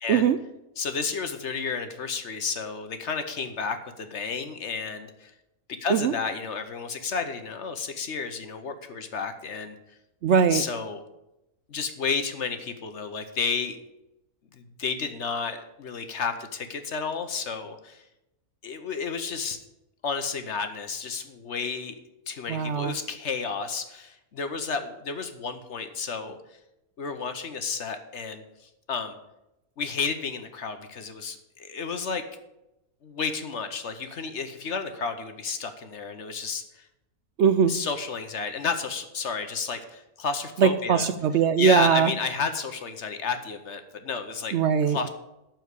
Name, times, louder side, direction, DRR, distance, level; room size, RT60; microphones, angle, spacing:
voice 1, 0.8-5.3 5.8-9.8 10.5-11.0 11.7-13.8 14.5-18.0 18.6-19.6 20.0-21.9 22.3-26.4 27.0-28.4 28.9-29.2 29.8-32.2 33.0-36.8 37.7-41.1 41.6-44.5 44.9-45.1, left 5 dB, 55° left, 8 dB, 1.1 m, -31 dB
voice 2, 10.2-10.6 22.5-22.9 37.4-37.7 40.6-42.1 44.5-45.0, right 7 dB, 65° right, 11 dB, 0.7 m, -21 dB
12.0 x 4.6 x 8.1 m, 0.92 s
omnidirectional pair, 1.5 m